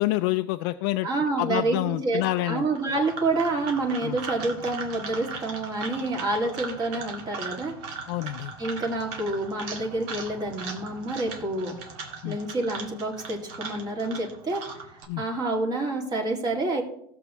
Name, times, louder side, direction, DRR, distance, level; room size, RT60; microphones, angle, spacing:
voice 1, 0.0-1.1 1.4-2.6 4.0-4.2 8.1-8.5 12.2-12.4 15.1-15.2, left 17 dB, 75° left, 7 dB, 0.4 m, -27 dB
voice 2, 1.0-7.7 8.6-11.8 12.2-14.6 14.9-16.8, right 2 dB, 35° right, 0 dB, 2.2 m, -28 dB
sound 1, 2.7-15.0, right 4 dB, 75° right, 1.9 m, -39 dB
16.0 x 6.9 x 3.1 m, 0.72 s
supercardioid pair, 115°, 12 cm